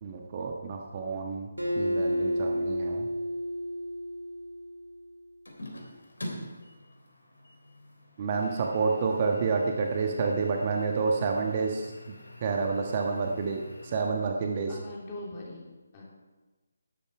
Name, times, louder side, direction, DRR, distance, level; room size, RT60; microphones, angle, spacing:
voice 1, 0.0-1.5 1.8-3.1 8.2-11.9 12.4-14.8, right 4 dB, 35° right, 2 dB, 1.3 m, -29 dB
Acoustic guitar, 1.6-5.0, equal, 90° right, 2.7 m, -31 dB
sound 1, 5.4-14.0, left 1 dB, 75° left, 3.2 m, -46 dB
voice 2, 14.7-16.0, left 1 dB, 30° left, -3 dB, 3.2 m, -42 dB
12.0 x 10.5 x 4.8 m, 1.2 s
figure-of-eight pair, 150°, 0 cm